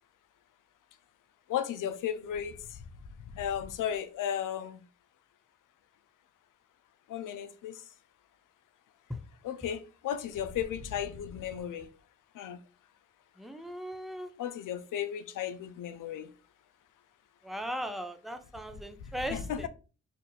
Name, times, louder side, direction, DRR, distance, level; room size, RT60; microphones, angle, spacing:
voice 1, 1.5-2.5 3.3-4.8 7.1-7.8 9.4-11.9 12.4-12.6 14.4-16.3 19.3-19.7, left 9 dB, 75° left, 0.5 m, -34 dB
voice 2, 13.4-14.3 17.4-19.7, equal, ahead, 0.5 m, -38 dB
2.7 x 2.5 x 4.0 m
cardioid pair, 55°, 32 cm